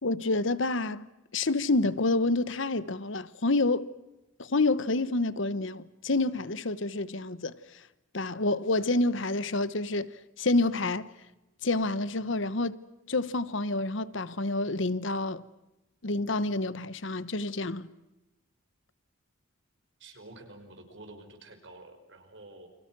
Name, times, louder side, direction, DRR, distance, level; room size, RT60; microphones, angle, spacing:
voice 1, 0.0-1.1 1.3-3.9 4.4-7.5 8.1-11.1 11.6-12.8 13.1-15.4 16.0-17.9, left 2 dB, 70° left, 1.1 m, -28 dB
voice 2, 20.0-22.7, right 2 dB, 65° right, 5.5 m, -49 dB
29.5 x 25.5 x 6.2 m
head